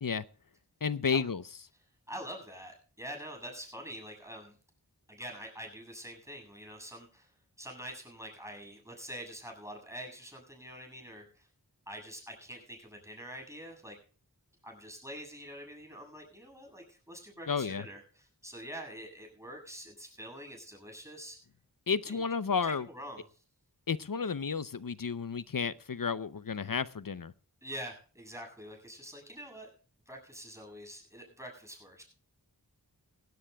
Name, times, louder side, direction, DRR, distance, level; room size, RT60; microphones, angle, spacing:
voice 1, 0.8-1.4 17.5-17.8 21.9-22.8 23.9-27.3, left 5 dB, 55° left, 0.6 m, -32 dB
voice 2, 2.1-4.6 5.1-7.3 7.6-11.5 11.9-14.0 14.6-21.4 22.1-22.2 22.6-23.4 27.6-29.7 30.1-32.0, equal, 5° right, 7.7 m, -45 dB
19.5 x 17.0 x 2.3 m
wide cardioid pair, 45°, 39 cm